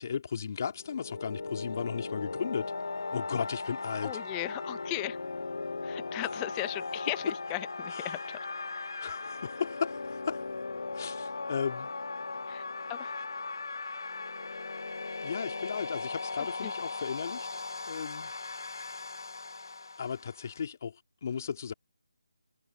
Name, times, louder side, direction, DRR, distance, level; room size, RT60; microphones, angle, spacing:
voice 1, 0.0-2.7 3.1-4.2 7.9-8.2 9.0-10.4 10.9-11.9 15.2-17.5 17.9-18.3 18.9-19.0 20.0-21.7, left 7 dB, 40° left, 2.5 m, -35 dB
sound 1, 0.7-20.6, left 3 dB, 70° left, 0.7 m, -38 dB
voice 2, 4.0-5.2 5.8-8.4 12.5-13.2 16.4-16.7, left 32 dB, 15° left, 0.8 m, -37 dB
figure-of-eight pair, 155°, 2 cm